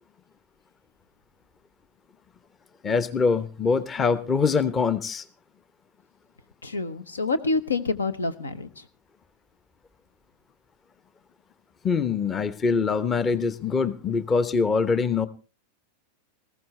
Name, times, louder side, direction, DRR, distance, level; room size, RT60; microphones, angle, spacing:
voice 1, 2.8-5.2 11.8-15.3, left 5 dB, 20° left, 15 dB, 0.9 m, -24 dB
voice 2, 6.6-8.7, left 3 dB, 75° left, 13 dB, 1.1 m, -27 dB
20.0 x 15.0 x 3.2 m, 0.33 s
figure-of-eight pair, 90°, 0 cm